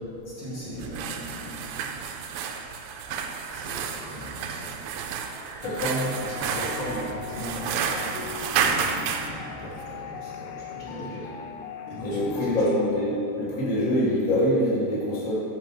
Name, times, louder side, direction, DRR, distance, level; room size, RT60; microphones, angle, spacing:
voice 1, 0.2-1.8 3.5-4.8 6.2-11.2 11.9-12.6, equal, 55° left, -7 dB, 1.6 m, -38 dB
sound 1, 0.8-9.3, right 6 dB, 85° right, 2.7 m, -31 dB
sound 2, 5.6-12.9, left 6 dB, 85° left, 2.7 m, -40 dB
voice 2, 5.6-6.2 10.9-11.0 12.0-15.3, equal, 35° left, -8 dB, 1.4 m, -25 dB
9.1 x 5.8 x 6.1 m, 2.8 s
omnidirectional pair, 4.9 m